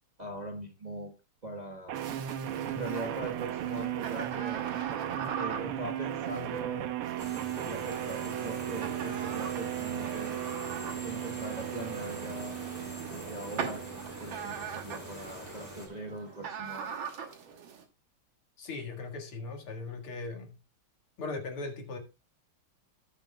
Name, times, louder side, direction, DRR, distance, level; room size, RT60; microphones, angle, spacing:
voice 1, 0.2-1.1 1.4-2.0 2.5-4.7 5.3-6.9 7.5-10.4 11.0-17.0, right 2 dB, 25° right, 1.1 m, -41 dB
sound 1, 1.9-14.9, right 12 dB, 90° right, 1.7 m, -36 dB
sound 2, 2.0-17.8, right 7 dB, 65° right, 2.1 m, -42 dB
sound 3, 7.2-15.9, right 1 dB, 10° right, 2.8 m, -44 dB
voice 2, 18.6-20.5 21.2-22.0, left 3 dB, 80° left, 2.7 m, -38 dB
17.0 x 6.6 x 2.3 m
omnidirectional pair, 2.4 m